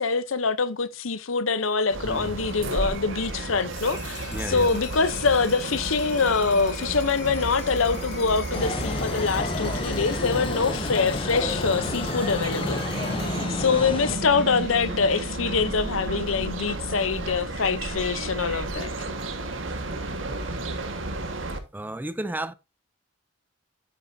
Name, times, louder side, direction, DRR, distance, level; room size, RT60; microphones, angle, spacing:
voice 1, 0.0-12.8 13.5-18.9, left 4 dB, 85° left, 0.8 m, -25 dB
sound 1, 1.9-21.6, right 2 dB, 70° right, 1.6 m, -33 dB
sound 2, 3.6-17.5, left 5 dB, 55° left, 3.1 m, -42 dB
voice 2, 4.3-4.7 21.7-22.5, right 1 dB, 10° right, 0.5 m, -32 dB
sound 3, 8.5-14.2, left 2 dB, 25° left, 0.7 m, -31 dB
9.1 x 8.8 x 2.7 m
head